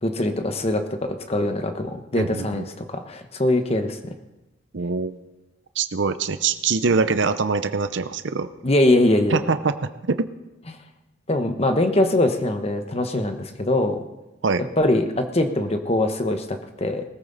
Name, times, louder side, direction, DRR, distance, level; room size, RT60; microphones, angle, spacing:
voice 1, 0.0-4.1 8.6-9.4 11.3-14.0 14.8-17.0, left 1 dB, 30° left, 6 dB, 1.1 m, -22 dB
voice 2, 2.2-2.6 4.7-5.2 5.8-8.5 9.3-10.3 14.4-14.6, right 4 dB, 65° right, 10 dB, 0.7 m, -23 dB
20.0 x 14.0 x 4.1 m, 1.0 s
head